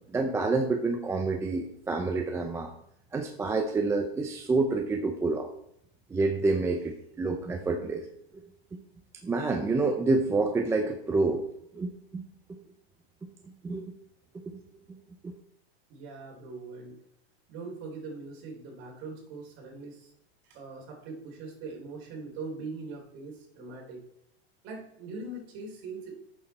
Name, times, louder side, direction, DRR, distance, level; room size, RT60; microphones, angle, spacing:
voice 1, 0.1-2.7 3.1-5.5 6.1-8.1 9.2-11.4 11.7-12.2 13.6-13.9 14.5-14.6 15.2-15.3, right 3 dB, 10° right, 4 dB, 0.5 m, -28 dB
voice 2, 15.9-17.0 17.5-20.1 20.4-24.0 24.6-26.1, right 3 dB, 40° right, -1 dB, 3.7 m, -41 dB
9.3 x 6.6 x 4.4 m, 0.74 s
supercardioid pair, 145°, 31 cm